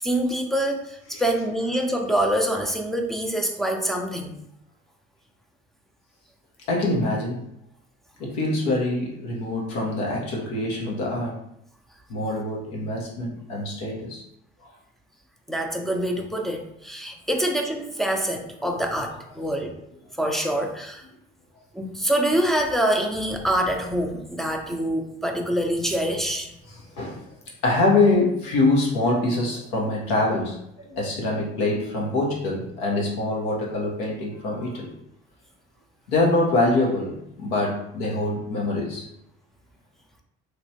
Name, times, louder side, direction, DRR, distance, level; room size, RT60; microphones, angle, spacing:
voice 1, 0.0-4.3 15.5-19.8 20.2-21.0 21.7-26.5, right 1 dB, ahead, 2 dB, 0.5 m, -25 dB
voice 2, 6.7-7.4 8.2-11.4 12.1-14.2 27.0-27.2 27.6-34.9 36.1-39.0, left 2 dB, 80° left, -2 dB, 1.0 m, -24 dB
3.0 x 3.0 x 2.8 m, 0.79 s
hypercardioid pair, 55°, 30 cm